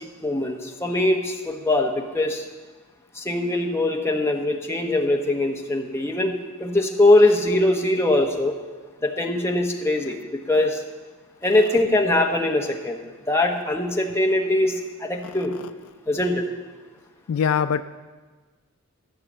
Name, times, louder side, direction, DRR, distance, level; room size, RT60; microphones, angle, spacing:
voice 1, 0.0-2.4 3.1-6.3 6.6-8.6 9.0-10.2 10.5-10.8 11.4-13.0 13.3-15.5 16.1-16.4, left 1 dB, 10° left, 1 dB, 1.0 m, -22 dB
voice 2, 15.2-15.7 17.3-17.8, left 7 dB, 75° left, 12 dB, 0.3 m, -24 dB
13.0 x 6.7 x 7.4 m, 1.4 s
head